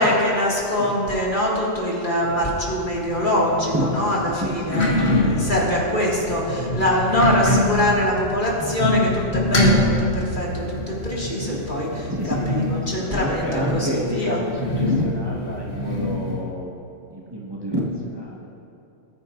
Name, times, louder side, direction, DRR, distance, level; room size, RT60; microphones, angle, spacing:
voice 1, 0.0-14.4, left 1 dB, 40° left, -5 dB, 2.3 m, -23 dB
sound 1, 2.2-16.4, left 1 dB, 55° left, 1.9 m, -25 dB
voice 2, 3.7-4.9 8.6-8.8 12.1-16.7 17.1-18.5, equal, 20° right, -5 dB, 1.4 m, -28 dB
20.0 x 9.6 x 2.6 m, 2.9 s
omnidirectional pair, 1.3 m